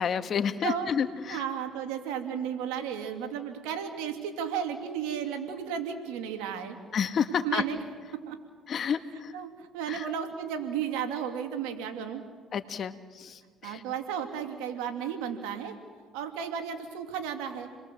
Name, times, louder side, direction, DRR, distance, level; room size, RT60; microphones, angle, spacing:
voice 1, 0.0-1.4 6.9-7.6 8.7-9.3 9.9-10.1 12.5-13.8, left 7 dB, 50° left, 9 dB, 1.8 m, -30 dB
voice 2, 1.3-6.8 7.4-7.8 8.1-8.4 9.3-12.2 13.6-15.8 16.1-17.7, right 8 dB, 85° right, 5 dB, 2.9 m, -34 dB
29.5 x 22.0 x 7.8 m, 1.5 s
supercardioid pair, 75°, 0 cm